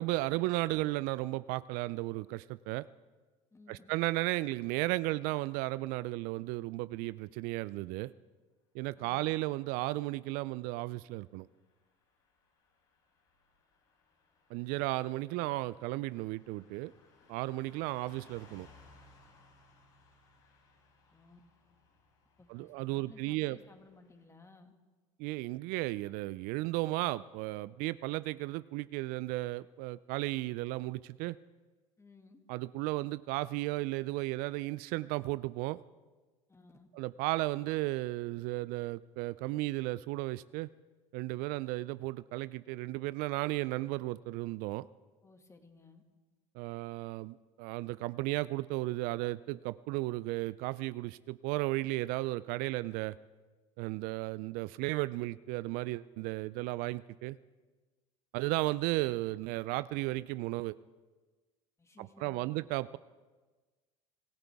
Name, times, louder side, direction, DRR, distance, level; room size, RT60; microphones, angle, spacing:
voice 1, 0.0-2.9 3.7-8.1 8.7-11.5 14.5-16.9 17.3-18.7 22.5-23.6 25.2-31.4 32.5-35.8 36.9-40.7 41.1-44.9 46.5-53.2 53.8-57.4 58.3-60.8 62.0-63.0, right 20 dB, 60° right, 17 dB, 0.4 m, -34 dB
voice 2, 3.5-3.9 9.0-9.3 21.1-21.4 22.4-24.7 32.0-32.4 36.5-36.9 45.2-46.0 61.8-62.5, left 3 dB, 15° left, 5 dB, 2.1 m, -58 dB
Car passing by / Truck, 11.2-24.2, left 3 dB, 70° left, 5.7 m, -64 dB
26.0 x 15.5 x 3.6 m, 1.3 s
hypercardioid pair, 75°, 17 cm